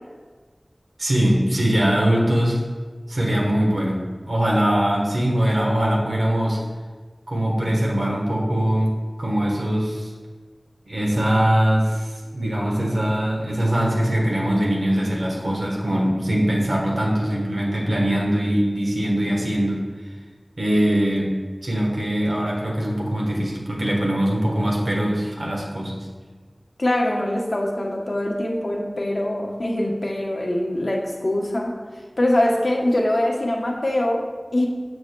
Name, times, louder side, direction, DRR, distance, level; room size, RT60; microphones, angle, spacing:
voice 1, 1.0-2.6 3.1-6.6 7.3-8.9 9.2-10.1 10.9-19.8 20.6-26.0, right 1 dB, 90° right, -2 dB, 1.1 m, -22 dB
voice 2, 26.8-31.8 32.2-34.7, left 1 dB, 65° left, 0 dB, 0.8 m, -23 dB
6.9 x 6.1 x 2.2 m, 1.4 s
wide cardioid pair, 45°, 0 cm